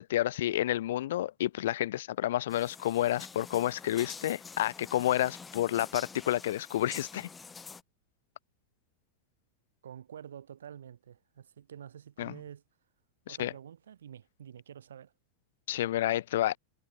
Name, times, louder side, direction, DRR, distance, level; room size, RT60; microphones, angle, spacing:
voice 1, 0.0-7.3 12.2-12.4 13.3-13.5 15.7-16.6, left 13 dB, 55° left, 0.6 m, -30 dB
sound 1, 2.5-7.8, left 5 dB, 15° left, 3.1 m, -47 dB
voice 2, 9.8-12.6 13.3-15.1, right 9 dB, 65° right, 2.9 m, -48 dB
figure-of-eight pair, 90°, 0 cm